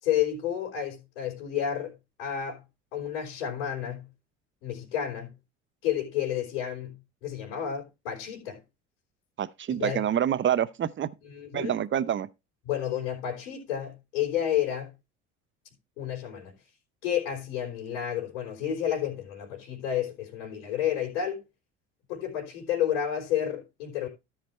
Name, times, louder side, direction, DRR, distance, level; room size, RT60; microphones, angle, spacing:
voice 1, 0.0-2.6 2.9-4.1 4.6-5.4 5.8-8.6 9.7-10.0 11.2-11.8 12.6-14.9 16.0-16.6 17.0-21.4 22.1-24.1, left 10 dB, 80° left, 3.7 m, -31 dB
voice 2, 9.4-11.1 11.5-12.3, right 10 dB, 35° right, 0.8 m, -27 dB
13.5 x 5.1 x 4.3 m
hypercardioid pair, 65°, 35 cm